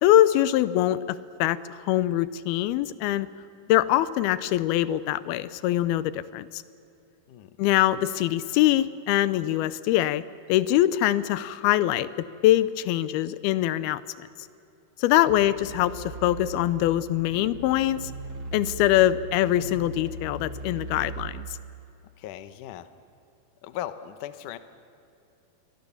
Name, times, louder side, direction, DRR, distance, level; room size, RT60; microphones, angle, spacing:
voice 1, 0.0-3.3 3.7-6.6 7.6-10.2 10.5-12.1 12.4-14.3 15.0-18.1 18.5-21.5, left 14 dB, 85° left, 16 dB, 2.6 m, -23 dB
sound 1, 15.3-21.3, right 2 dB, 35° right, 2.7 m, -39 dB
voice 2, 22.2-22.9 23.6-24.6, left 12 dB, 70° left, 11 dB, 2.3 m, -37 dB
28.0 x 23.5 x 7.1 m, 2.7 s
omnidirectional pair, 4.3 m